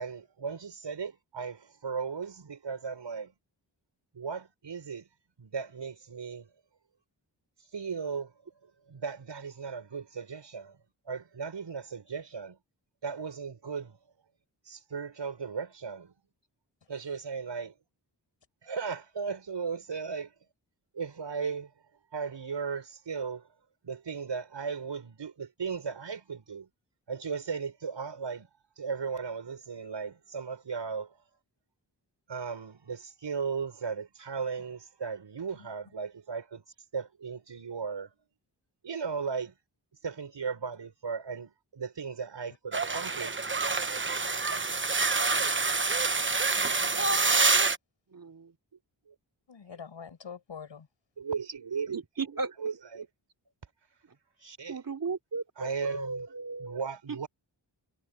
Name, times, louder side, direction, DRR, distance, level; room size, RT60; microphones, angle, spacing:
voice 1, 0.0-3.3 4.1-5.1 5.4-6.5 7.7-8.3 8.6-10.8 11.0-12.6 13.0-14.0 14.6-16.1 16.9-17.7 18.6-20.3 20.9-21.7 22.1-23.5 23.8-26.7 27.1-28.5 28.8-31.2 32.3-36.6 36.9-38.1 38.8-39.5 40.0-43.4 43.9-44.0 49.1-49.2 49.7-49.8 51.2-53.1 54.4-54.8 55.5-56.3 56.6-57.3, right 5 dB, 75° right, 6.8 m, -36 dB
sound 1, 42.7-47.8, right 3 dB, 25° right, 1.0 m, -27 dB
voice 2, 45.3-45.7 48.1-48.5 51.9-52.6 54.7-56.8 57.1-57.3, right 4 dB, 50° right, 3.1 m, -36 dB
voice 3, 46.5-47.1 49.5-50.9, left 6 dB, 85° left, 5.9 m, -45 dB
wide cardioid pair, 65°, 44 cm